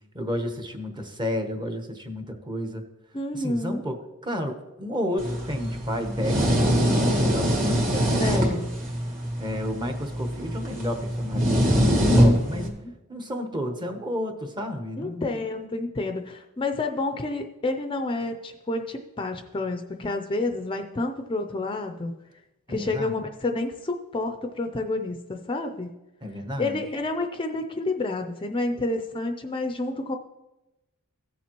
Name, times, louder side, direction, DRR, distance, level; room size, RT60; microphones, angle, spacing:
voice 1, 0.1-2.8 3.3-6.9 7.2-8.5 9.4-12.7 13.1-15.3 22.7-23.2 26.2-26.8, left 1 dB, 20° right, 5 dB, 0.9 m, -32 dB
voice 2, 3.1-3.8 8.2-8.7 12.1-12.9 15.0-22.1 22.7-25.9 26.6-30.2, left 2 dB, 25° left, 5 dB, 0.5 m, -29 dB
sound 1, 5.2-12.7, equal, 40° right, 2.1 m, -23 dB
16.0 x 7.2 x 3.0 m, 0.99 s
head